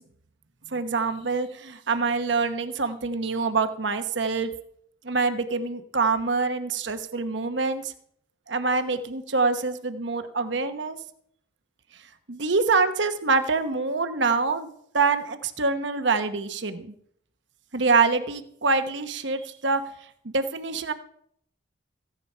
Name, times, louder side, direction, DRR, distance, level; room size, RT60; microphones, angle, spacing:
voice 1, 0.7-4.5 5.0-7.9 8.5-11.0 12.3-14.7 14.9-16.9 17.7-19.8 20.2-20.9, right 4 dB, 65° right, 9 dB, 1.0 m, -25 dB
15.0 x 10.5 x 5.5 m, 0.67 s
head